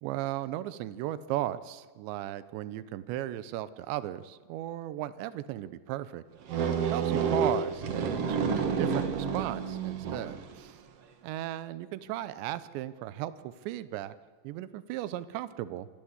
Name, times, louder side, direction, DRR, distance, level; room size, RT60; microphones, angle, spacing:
voice 1, 0.0-6.2 6.9-10.8 11.2-14.1 14.4-15.9, right 14 dB, 90° right, 15 dB, 3.1 m, -36 dB
sound 1, 6.5-10.5, right 6 dB, 60° right, 1.6 m, -29 dB
27.0 x 14.5 x 8.1 m, 1.5 s
omnidirectional pair, 5.0 m